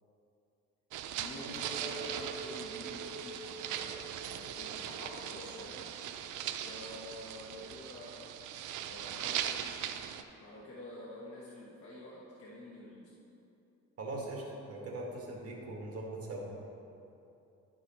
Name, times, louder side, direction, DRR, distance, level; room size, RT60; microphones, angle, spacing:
sound 1, 0.9-10.2, right 10 dB, 85° right, 0.5 m, -40 dB
voice 1, 1.1-5.9 6.6-8.2 8.8-9.8 10.4-13.1, left 1 dB, 45° left, -6 dB, 1.3 m, -48 dB
Chink clink, 1.5-7.0, right 3 dB, 30° right, 1.2 m, -48 dB
voice 2, 14.0-16.5, right 2 dB, 50° right, -2 dB, 1.9 m, -40 dB
11.0 x 4.8 x 4.4 m, 2.7 s
cardioid pair, 90°, 30 cm